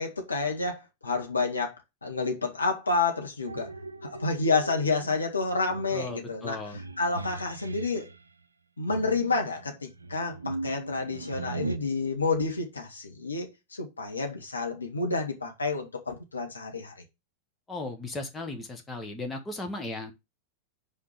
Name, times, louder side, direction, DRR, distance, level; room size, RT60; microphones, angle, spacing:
voice 1, 0.0-1.7 2.0-3.7 4.0-6.6 7.0-8.1 8.8-17.0, left 3 dB, 80° left, 1.8 m, -29 dB
sound 1, 3.5-8.2 8.9-11.8, right 3 dB, 80° right, 0.6 m, -39 dB
voice 2, 5.9-6.8 17.7-20.1, left 2 dB, 15° left, 1.5 m, -36 dB
5.9 x 5.0 x 6.6 m
figure-of-eight pair, 90°, 0 cm